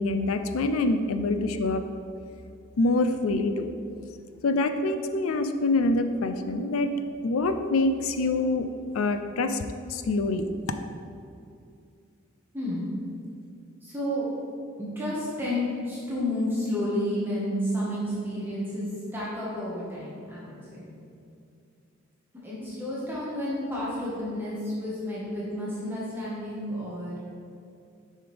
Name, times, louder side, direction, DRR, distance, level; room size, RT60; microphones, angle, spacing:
voice 1, 0.0-1.8 2.8-3.7 4.4-6.9 7.2-8.7 8.9-9.6 9.9-10.5, left 2 dB, 90° left, 8 dB, 0.4 m, -25 dB
voice 2, 12.5-12.9 13.8-14.3 14.8-20.9 22.4-27.2, left 1 dB, 10° right, -8 dB, 1.3 m, -31 dB
6.9 x 5.4 x 3.4 m, 2.5 s
head